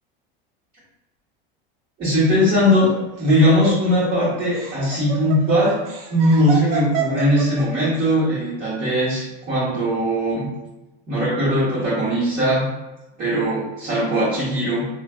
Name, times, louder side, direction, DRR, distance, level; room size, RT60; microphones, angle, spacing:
voice 1, 2.0-2.9 3.2-5.8 6.1-10.5 11.1-12.7 13.2-14.8, equal, 30° right, -10 dB, 1.4 m, -19 dB
Laughter, 2.7-8.0, right 5 dB, 80° right, 0.8 m, -29 dB
3.1 x 2.5 x 2.4 m, 1.0 s
supercardioid pair, 115°, 29 cm